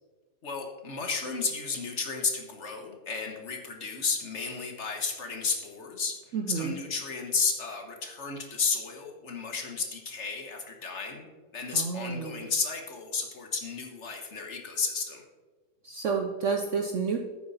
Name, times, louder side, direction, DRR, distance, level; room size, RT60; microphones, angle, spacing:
voice 1, 0.4-6.2 6.5-11.3 11.5-15.2, left 4 dB, 50° left, 3 dB, 1.4 m, -32 dB
voice 2, 6.3-6.8 11.7-12.4 15.8-17.2, right 5 dB, 60° right, 4 dB, 0.9 m, -30 dB
9.8 x 8.8 x 4.1 m, 1.4 s
omnidirectional pair, 1.7 m